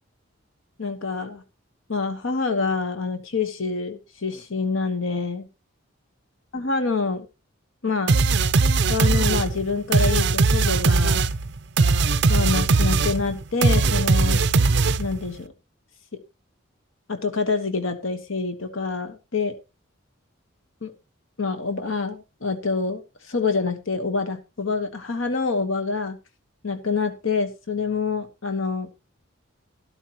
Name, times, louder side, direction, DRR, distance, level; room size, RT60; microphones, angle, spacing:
voice 1, 0.8-1.4 1.9-5.5 6.5-7.3 7.8-8.2 8.9-11.2 12.3-14.4 15.0-15.5 17.1-19.6 20.8-20.9 21.4-23.0 23.3-26.2 26.6-28.9, left 4 dB, 75° left, 8 dB, 1.3 m, -26 dB
sound 1, 8.1-15.3, right 3 dB, 55° right, 0.6 m, -20 dB
13.0 x 12.5 x 3.0 m, 0.28 s
head